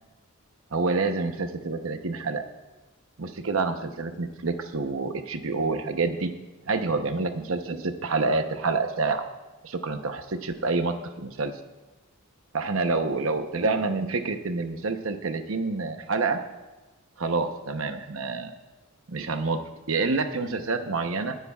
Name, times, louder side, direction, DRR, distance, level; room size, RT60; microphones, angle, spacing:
voice 1, 0.7-2.4 3.2-6.3 6.7-9.2 9.6-11.5 12.5-16.4 17.2-18.5 19.1-19.6 19.9-21.4, right 3 dB, 70° right, 7 dB, 0.9 m, -27 dB
19.5 x 9.7 x 2.4 m, 1.2 s
head